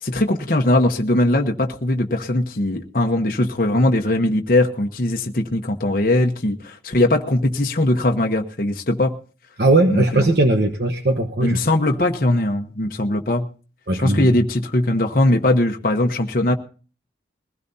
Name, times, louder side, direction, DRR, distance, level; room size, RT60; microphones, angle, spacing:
voice 1, 0.0-9.2 9.9-10.3 11.4-13.5 13.9-16.5, left 1 dB, 50° left, 3 dB, 1.0 m, -20 dB
voice 2, 9.6-11.6 13.9-14.3, right 2 dB, 60° right, 5 dB, 1.1 m, -18 dB
21.5 x 16.0 x 2.7 m, 0.38 s
head